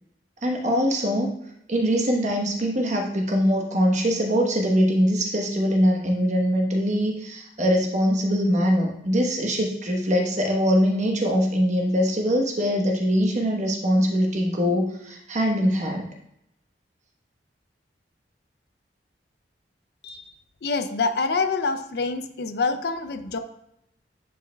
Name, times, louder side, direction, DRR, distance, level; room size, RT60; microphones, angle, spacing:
voice 1, 0.4-1.3 1.7-16.1, equal, 40° right, 0 dB, 1.1 m, -22 dB
voice 2, 20.6-23.4, left 4 dB, 60° left, 9 dB, 0.5 m, -26 dB
9.5 x 5.2 x 2.3 m, 0.79 s
head